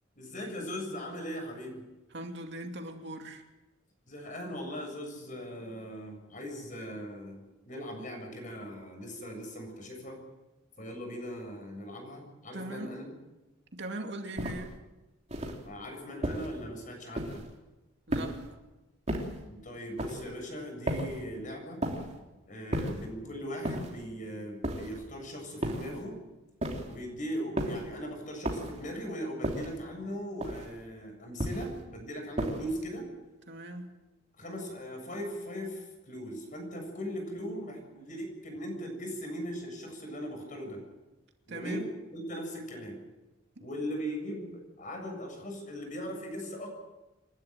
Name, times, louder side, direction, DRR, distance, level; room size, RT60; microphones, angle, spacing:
voice 1, 0.2-1.8 4.1-10.2 10.8-13.1 15.6-17.4 19.5-21.8 22.5-26.2 26.9-33.1 34.4-40.8 41.5-43.0 43.6-46.7, equal, 40° left, 3 dB, 7.4 m, -39 dB
voice 2, 2.1-3.4 12.5-12.9 13.7-14.8 18.1-18.4 33.5-33.9 41.5-41.9, right 1 dB, 60° right, 4 dB, 2.6 m, -40 dB
sound 1, 14.4-14.8 15.3-15.7 16.2-16.6 17.2-17.6 18.1-18.5 19.1-19.4 20.0-20.3 20.9-21.3 21.8-22.2 22.7-23.1 23.6-24.1 24.6-25.1 25.6-26.0 26.6-27.0 27.6-27.9 28.4-28.9 29.4-29.8 30.4-30.8 31.4-31.8 32.4-32.8, right 1 dB, 35° right, 3.2 m, -34 dB
28.0 x 12.5 x 9.1 m, 1.1 s
head